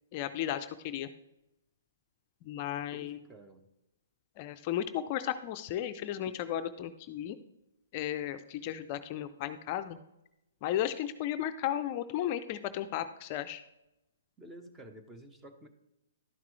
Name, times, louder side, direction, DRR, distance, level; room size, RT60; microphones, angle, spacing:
voice 1, 0.1-1.1 2.4-3.2 4.4-7.4 7.9-10.0 10.6-13.6, left 11 dB, 40° left, 9 dB, 0.5 m, -34 dB
voice 2, 2.9-3.7 14.4-15.7, right 1 dB, 10° right, 7 dB, 0.9 m, -51 dB
12.0 x 5.8 x 3.2 m, 0.90 s
hypercardioid pair, 140°, 0 cm